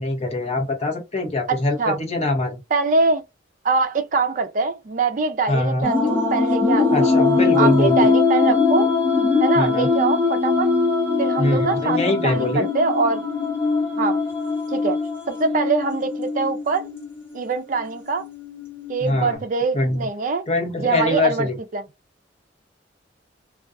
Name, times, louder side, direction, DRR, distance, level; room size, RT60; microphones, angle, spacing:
voice 1, 0.0-2.5 5.5-5.8 6.9-8.0 9.6-9.9 11.4-12.7 19.0-19.4 19.7-20.1 20.5-21.5, left 2 dB, 35° left, 0.8 m, -23 dB
voice 2, 1.5-2.0 2.7-3.2 3.6-7.1 7.6-8.9 9.4-10.7 11.2-13.2 14.0-14.2 14.7-15.0 15.3-16.9 17.3-18.3 18.9-20.4 20.8-21.8, right 4 dB, 45° right, 0.4 m, -23 dB
sound 1, 5.8-19.3, left 4 dB, 15° left, 1.0 m, -22 dB
2.4 x 2.3 x 2.4 m
head